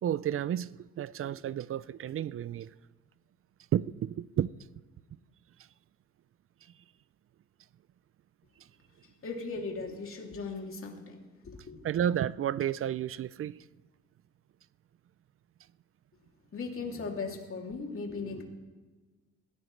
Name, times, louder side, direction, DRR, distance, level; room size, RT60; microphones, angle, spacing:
voice 1, 0.0-2.7 3.7-4.5 11.8-13.6, right 10 dB, 45° right, 0.4 m, -31 dB
voice 2, 9.2-11.2 11.4-11.9 16.5-18.4, left 4 dB, 45° left, 2.8 m, -38 dB
21.5 x 16.0 x 3.3 m
cardioid pair, 90°, 30 cm